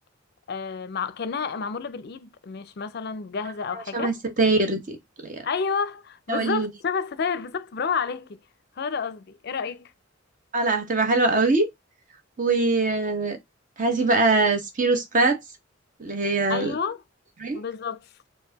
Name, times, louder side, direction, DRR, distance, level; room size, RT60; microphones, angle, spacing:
voice 1, 0.5-4.1 5.4-8.4 8.8-9.9 16.5-17.0 17.5-18.0, left 5 dB, 55° left, 0.5 m, -30 dB
voice 2, 3.7-5.0 5.2-5.5 6.3-6.7 10.5-11.7 12.4-13.4 13.8-15.4 16.0-16.7 17.4-17.6, right 3 dB, 40° right, 0.9 m, -22 dB
4.6 x 2.6 x 3.9 m
head